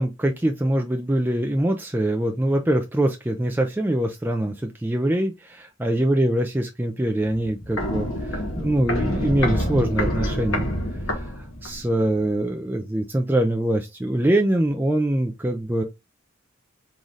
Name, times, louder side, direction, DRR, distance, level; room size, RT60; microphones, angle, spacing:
voice 1, 0.0-10.7 11.1-15.8, right 1 dB, 10° right, 0.4 m, -23 dB
Walk footsteps, 7.2-11.9 12.2-12.3, left 1 dB, 90° left, 1.7 m, -27 dB
4.0 x 3.7 x 3.1 m
head